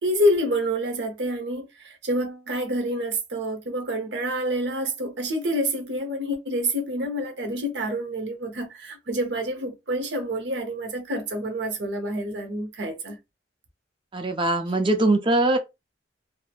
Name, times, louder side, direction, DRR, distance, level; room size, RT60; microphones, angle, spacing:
voice 1, 0.0-13.2, equal, 70° right, 0.8 m, -27 dB
voice 2, 14.1-15.6, right 2 dB, 30° right, 0.5 m, -21 dB
3.1 x 2.0 x 2.3 m
head